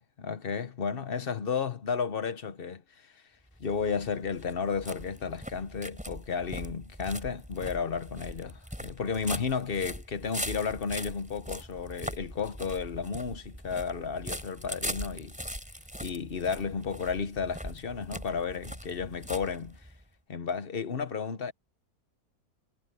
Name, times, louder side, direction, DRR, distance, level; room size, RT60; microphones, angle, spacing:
voice 1, 0.0-3.2 3.6-15.4 16.0-19.8 20.3-21.5, left 5 dB, 40° left, 1.1 m, -33 dB
sound 1, 3.5-20.0, equal, 5° right, 3.7 m, -41 dB
omnidirectional pair, 1.6 m